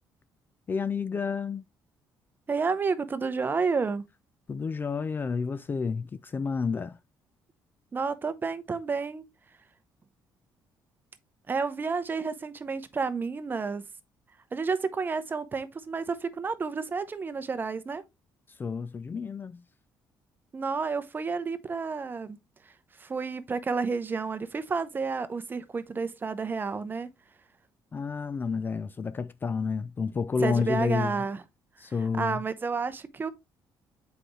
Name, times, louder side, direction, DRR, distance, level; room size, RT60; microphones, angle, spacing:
voice 1, 0.7-1.6 4.5-7.0 18.6-19.6 27.9-31.2 31.8-32.4, left 5 dB, 25° left, 0.4 m, -30 dB
voice 2, 2.5-4.0 7.9-9.2 11.5-13.8 14.5-18.0 20.5-22.4 23.0-27.1 30.4-31.4 32.1-33.3, right 4 dB, 25° right, 0.8 m, -30 dB
7.6 x 4.9 x 3.1 m
cardioid pair, 130°, 8 cm